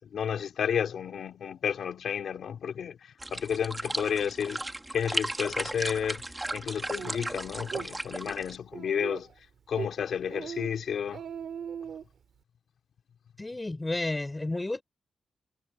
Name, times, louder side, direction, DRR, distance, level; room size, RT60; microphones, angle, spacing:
voice 1, 0.0-3.0 3.3-4.6 4.9-6.2 6.5-9.3 9.7-11.2, left 8 dB, 75° left, 3.7 m, -31 dB
sound 1, 3.2-8.6, right 2 dB, 15° right, 4.1 m, -35 dB
Speech, 7.0-7.1 7.6-7.9 8.3-8.4 8.7-9.3 9.7-9.9 10.3-10.7 11.0-12.0, right 7 dB, 70° right, 4.2 m, -38 dB
voice 2, 13.4-14.8, left 2 dB, 20° left, 5.2 m, -31 dB
cardioid pair, 90°, 0 cm